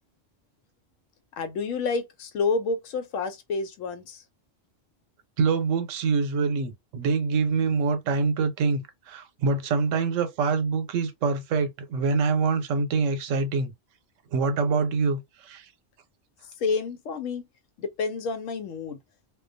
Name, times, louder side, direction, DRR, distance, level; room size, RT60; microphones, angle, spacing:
voice 1, 1.4-4.2 16.6-17.4 17.8-19.0, left 4 dB, 90° left, 1.0 m, -29 dB
voice 2, 5.4-13.7 14.3-15.7, right 4 dB, 85° right, 0.9 m, -25 dB
2.2 x 2.2 x 2.5 m
omnidirectional pair, 1.3 m